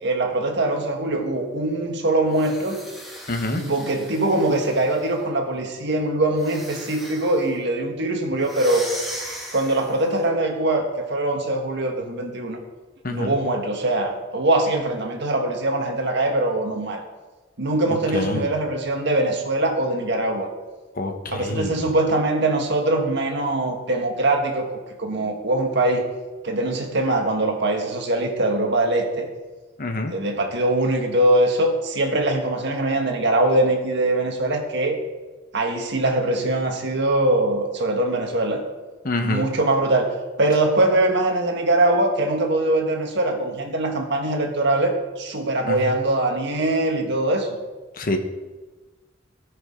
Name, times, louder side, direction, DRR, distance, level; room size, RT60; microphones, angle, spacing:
voice 1, 0.0-2.8 3.5-8.9 9.5-12.6 13.1-17.0 17.6-20.5 21.3-24.7 25.0-26.0 26.4-29.3 30.1-35.0 35.5-38.6 39.2-40.1 40.4-47.6, right 2 dB, 60° right, 3 dB, 1.6 m, -22 dB
sound 1, 2.3-5.3 6.3-7.5 8.4-10.1, equal, ahead, 2.6 m, -38 dB
voice 2, 3.3-3.6 13.0-13.4 18.1-18.5 20.9-21.9 29.8-30.1 39.0-39.5 45.7-45.9 48.0-48.2, left 2 dB, 45° left, 5 dB, 1.1 m, -26 dB
18.5 x 6.5 x 3.8 m, 1.2 s
head